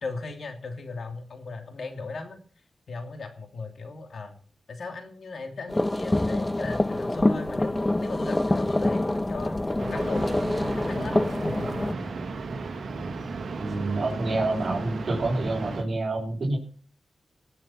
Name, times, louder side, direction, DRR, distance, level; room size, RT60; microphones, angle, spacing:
voice 1, 0.0-2.4 2.9-4.4 4.7-7.7 8.0-12.2, left 3 dB, 70° left, 6 dB, 3.0 m, -38 dB
sound 1, 5.7-11.9, left 1 dB, 20° left, 0.5 m, -26 dB
sound 2, 9.8-15.8, right 3 dB, 75° right, 2.2 m, -34 dB
voice 2, 13.6-16.6, right 2 dB, 60° right, -5 dB, 4.6 m, -27 dB
18.5 x 7.8 x 5.9 m, 0.42 s
cardioid pair, 65°, 0 cm